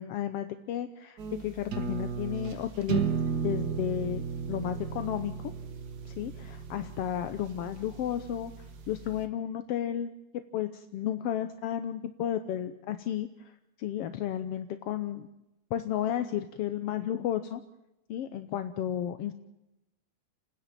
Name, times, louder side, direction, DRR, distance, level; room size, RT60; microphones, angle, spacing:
voice 1, 0.0-3.0 3.4-5.5 6.0-8.5 8.9-13.5 13.8-15.3 15.7-17.6 18.1-19.3, left 10 dB, 70° left, 9 dB, 1.5 m, -33 dB
sound 1, 1.2-9.3, right 6 dB, 50° right, 1.1 m, -35 dB
30.0 x 10.5 x 9.0 m, 0.91 s
omnidirectional pair, 3.5 m